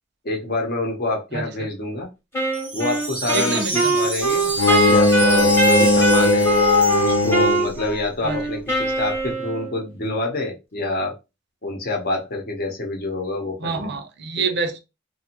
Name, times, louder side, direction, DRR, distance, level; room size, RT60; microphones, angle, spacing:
voice 1, 0.2-2.1 2.7-6.5 7.0-11.1 11.6-13.9, left 2 dB, 50° left, 1 dB, 0.8 m, -27 dB
voice 2, 1.3-1.7 3.3-4.0 8.2-8.4 13.6-14.8, right 4 dB, 55° right, 7 dB, 0.5 m, -27 dB
Wind instrument woodwind instrument, 2.3-9.8, right 2 dB, 15° left, 0.9 m, -23 dB
Wind chime, 2.5-7.9, right 2 dB, 5° right, 0.4 m, -30 dB
Bowed string instrument, 4.6-7.8, left 2 dB, 85° left, 0.6 m, -18 dB
2.5 x 2.3 x 2.8 m, 0.26 s
head